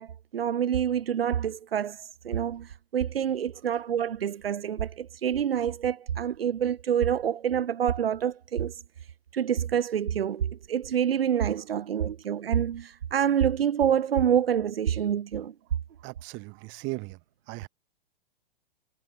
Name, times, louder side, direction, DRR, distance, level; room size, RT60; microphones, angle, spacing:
voice 1, 0.0-8.8 9.3-15.5, right 9 dB, 75° right, 2.8 m, -27 dB
voice 2, 16.0-17.2 17.5-17.7, right 28 dB, 40° right, 7.6 m, -37 dB
hypercardioid pair, 120°, 30 cm